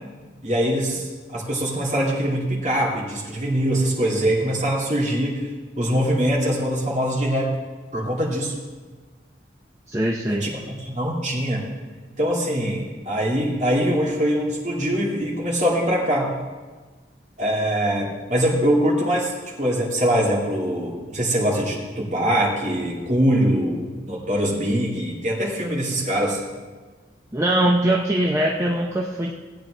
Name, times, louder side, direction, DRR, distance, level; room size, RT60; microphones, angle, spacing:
voice 1, 0.4-5.4 5.8-7.6 7.9-8.5 10.3-11.6 12.2-16.3 17.4-19.3 19.6-26.4, equal, 40° right, -4 dB, 2.5 m, -23 dB
voice 2, 9.9-10.5 27.3-29.4, right 1 dB, 15° right, -1 dB, 0.6 m, -22 dB
16.5 x 8.6 x 3.3 m, 1.3 s
head